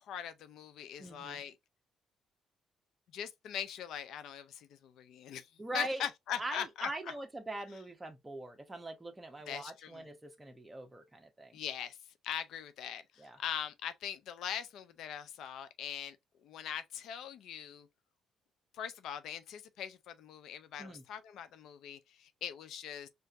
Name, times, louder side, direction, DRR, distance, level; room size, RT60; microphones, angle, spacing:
voice 1, 0.1-1.5 3.1-5.5 5.7-6.9 9.5-10.0 11.5-12.0 12.2-16.2 16.4-17.9 18.7-23.1, left 9 dB, 80° left, 0.5 m, -41 dB
voice 2, 1.0-1.4 5.6-6.0 6.4-11.6 13.2-13.4 20.8-21.0, right 2 dB, 15° right, 1.0 m, -42 dB
4.4 x 2.6 x 2.6 m
cardioid pair, 90°, 0 cm